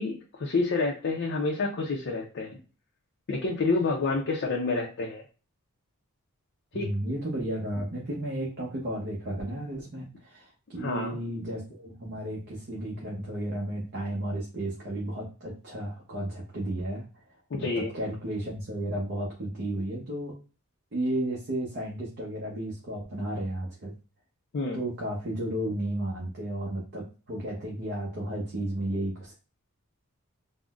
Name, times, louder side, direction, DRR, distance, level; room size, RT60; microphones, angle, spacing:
voice 1, 0.0-2.6 3.3-5.2 6.7-6.9 10.8-11.2 17.5-17.9 24.5-24.8, left 3 dB, 55° left, -1 dB, 0.5 m, -28 dB
voice 2, 6.7-17.0 17.8-20.4 20.9-23.9 24.7-29.3, right 1 dB, 50° right, -3 dB, 0.7 m, -33 dB
3.7 x 2.1 x 2.3 m, 0.34 s
head